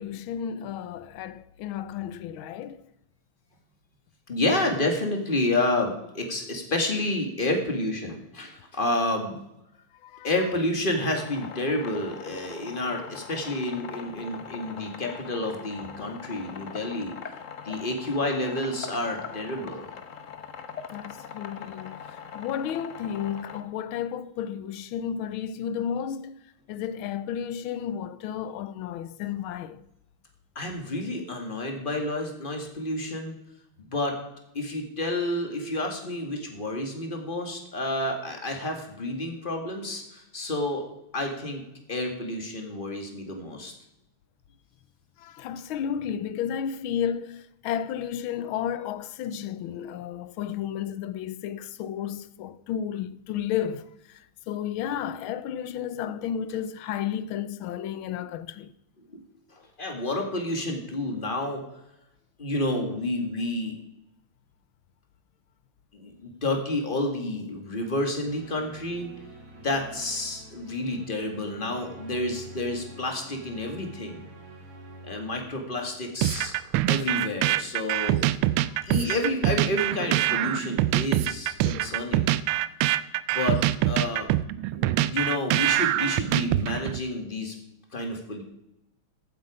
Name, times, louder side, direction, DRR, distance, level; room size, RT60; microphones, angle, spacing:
voice 1, 0.0-2.8 10.0-10.3 20.9-26.4 26.7-29.8 45.2-58.7, left 9 dB, 80° left, 1.5 m, -32 dB
voice 2, 4.3-9.4 10.2-17.1 17.6-19.9 30.6-33.4 33.8-34.2 34.5-40.8 41.1-41.6 41.9-43.7 59.1-59.2 59.8-61.6 62.4-63.8 65.9-69.1 69.6-74.3 75.0-76.5 76.9-78.2 78.8-82.3 83.3-84.3 84.7-87.6 87.9-88.4, left 1 dB, 25° left, 2.0 m, -29 dB
sound 1, 10.9-23.6, left 7 dB, 45° left, 1.1 m, -42 dB
sound 2, 68.2-77.1, right 2 dB, 65° right, 2.9 m, -47 dB
sound 3, 76.2-87.0, right 14 dB, 90° right, 1.4 m, -24 dB
15.5 x 8.3 x 4.9 m
omnidirectional pair, 2.3 m